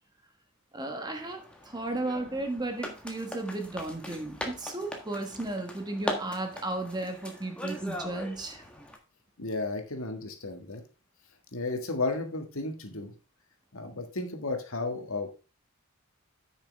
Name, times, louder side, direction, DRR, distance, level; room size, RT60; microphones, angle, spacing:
voice 1, 0.7-8.7, right 2 dB, 20° right, 5 dB, 1.2 m, -34 dB
sound 1, 1.1-9.0, equal, 5° left, 1.5 m, -40 dB
voice 2, 9.4-10.8 11.5-13.1 13.7-15.3, left 3 dB, 85° left, 5 dB, 1.7 m, -33 dB
9.6 x 6.5 x 3.5 m, 0.31 s
head